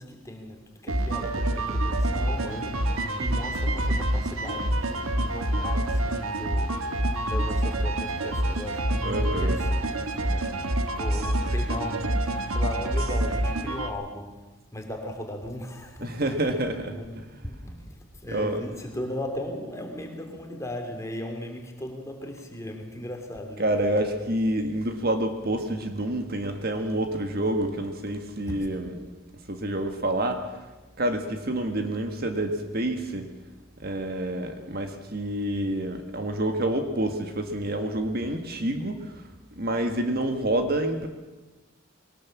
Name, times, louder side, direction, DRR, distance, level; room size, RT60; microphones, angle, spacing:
voice 1, 0.0-16.5 16.8-23.9 28.5-28.7, left 1 dB, 15° left, 2.8 m, -37 dB
sound 1, 0.9-13.9, right 1 dB, 85° right, 1.5 m, -27 dB
voice 2, 9.0-9.6 16.0-17.0 18.3-18.6 23.6-28.9 29.5-30.5 31.0-33.3 33.8-39.3 39.6-41.1, right 1 dB, 45° right, 1.7 m, -28 dB
21.5 x 18.5 x 7.2 m
head